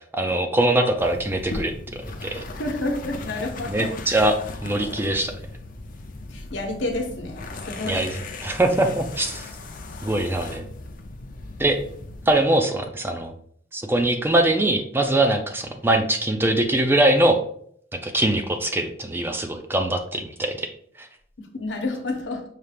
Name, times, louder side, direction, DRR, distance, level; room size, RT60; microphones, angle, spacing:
voice 1, 0.1-1.7 2.2-2.4 3.7-4.3 4.6-5.3 7.8-8.1 8.4-9.5 10.0-10.6 11.6-11.8 12.3-13.3 13.7-17.4 18.0-20.7, right 1 dB, 10° right, 5 dB, 0.4 m, -22 dB
sound 1, 1.0-12.3, left 3 dB, 50° left, 0.5 m, -37 dB
voice 2, 2.6-3.9 6.3-8.0 21.4-22.4, left 2 dB, 90° left, 2 dB, 1.0 m, -29 dB
5.6 x 2.4 x 3.3 m, 0.63 s
head